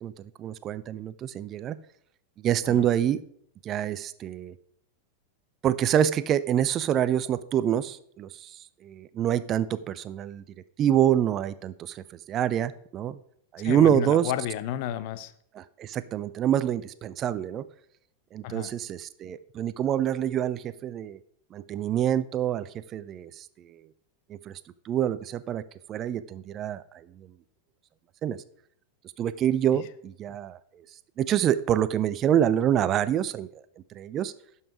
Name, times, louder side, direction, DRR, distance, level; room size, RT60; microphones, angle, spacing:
voice 1, 0.0-1.8 2.4-3.2 3.6-4.5 5.6-8.5 8.8-10.4 10.8-13.2 13.5-14.3 15.5-17.6 18.3-21.2 21.5-23.4 24.3-24.5 24.9-25.6 25.9-27.3 28.2-28.4 29.2-30.6 31.2-33.6 34.0-34.3, right 10 dB, 30° right, 15 dB, 0.4 m, -26 dB
voice 2, 13.6-15.3 18.4-18.7, left 11 dB, 45° left, 14 dB, 0.6 m, -32 dB
12.0 x 5.6 x 4.8 m, 0.67 s
figure-of-eight pair, 90°, 0 cm